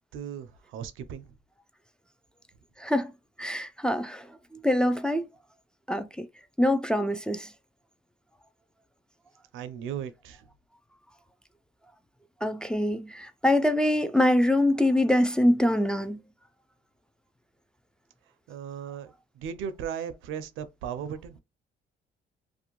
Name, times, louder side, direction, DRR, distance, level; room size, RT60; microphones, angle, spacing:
voice 1, 0.1-1.3 9.5-10.4 18.5-21.4, right 8 dB, 85° right, 0.5 m, -37 dB
voice 2, 2.8-3.1 3.4-4.3 4.6-5.2 5.9-6.3 6.6-7.5 12.4-16.2, left 1 dB, 5° left, 0.3 m, -24 dB
2.5 x 2.1 x 2.9 m
cardioid pair, 90°, 20 cm